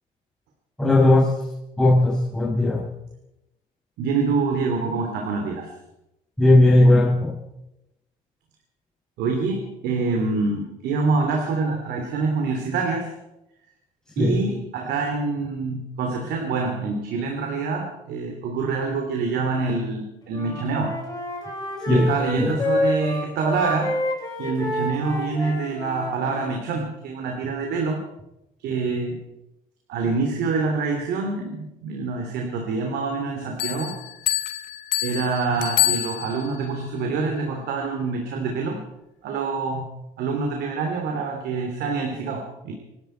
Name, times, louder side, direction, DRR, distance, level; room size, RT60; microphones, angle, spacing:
voice 1, 0.8-1.3 1.8-2.9 6.4-7.4 14.2-14.4 21.9-22.1 22.4-22.6, left 1 dB, 5° left, -6 dB, 6.1 m, -17 dB
voice 2, 4.0-5.7 9.2-13.1 14.2-20.9 21.8-24.0 24.4-28.0 28.6-29.2 29.9-33.9 35.0-38.8 39.2-39.8 40.2-42.7, right 4 dB, 80° right, 2 dB, 3.0 m, -26 dB
Wind instrument woodwind instrument, 20.3-26.6, left 1 dB, 20° left, 5.7 m, -28 dB
sound 1, 33.6-36.6, left 14 dB, 90° left, 1.4 m, -26 dB
26.5 x 12.0 x 4.5 m, 0.90 s
cardioid pair, 110°, 17 cm